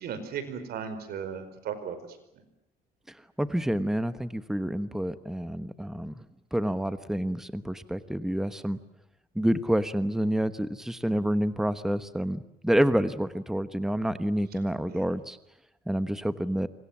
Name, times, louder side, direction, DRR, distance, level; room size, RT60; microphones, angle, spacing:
voice 1, 0.0-2.4 14.9-15.1, right 7 dB, 70° right, 11 dB, 5.0 m, -37 dB
voice 2, 3.4-6.2 6.5-8.8 9.3-15.4 15.9-16.7, equal, 5° right, 12 dB, 1.2 m, -28 dB
28.5 x 24.5 x 7.4 m, 0.84 s
cardioid pair, 110°, 17 cm